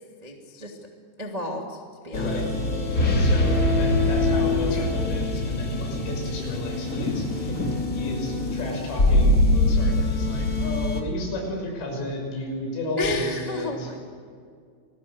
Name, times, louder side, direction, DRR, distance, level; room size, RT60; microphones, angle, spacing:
voice 1, 0.2-0.8 1.2-1.8 2.0-2.4 4.7-4.9 13.0-14.0, left 2 dB, 15° right, 1 dB, 1.2 m, -31 dB
voice 2, 2.1-2.5 3.0-13.9, left 1 dB, 75° left, 1 dB, 8.6 m, -33 dB
sound 1, 2.1-11.0, left 2 dB, 30° left, 1.6 m, -23 dB
27.5 x 20.0 x 8.0 m, 2.2 s
omnidirectional pair, 5.7 m